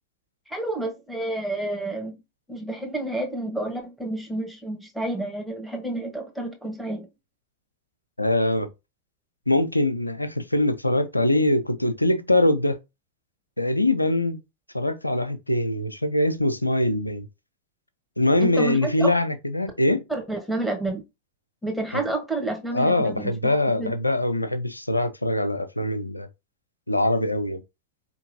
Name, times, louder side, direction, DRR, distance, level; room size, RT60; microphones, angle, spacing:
voice 1, 0.5-2.2 2.5-7.1 18.4-19.1 20.1-21.0 21.6-24.0, right 2 dB, ahead, 1.1 m, -30 dB
voice 2, 8.2-8.7 9.5-12.8 13.6-14.4 14.7-17.3 18.2-20.0 21.9-22.0 22.7-26.3 26.9-27.6, left 1 dB, 85° left, 0.4 m, -23 dB
4.4 x 2.9 x 2.6 m
figure-of-eight pair, 90°, 0 cm